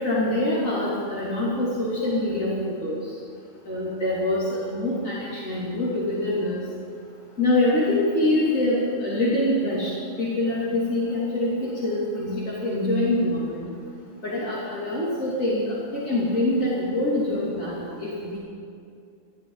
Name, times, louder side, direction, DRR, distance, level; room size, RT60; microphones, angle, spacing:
voice 1, 0.0-3.1 3.6-6.6 7.4-9.9 10.2-13.6 14.2-18.4, left 1 dB, 85° left, -7 dB, 3.4 m, -25 dB
26.0 x 12.5 x 4.0 m, 2.4 s
omnidirectional pair, 1.3 m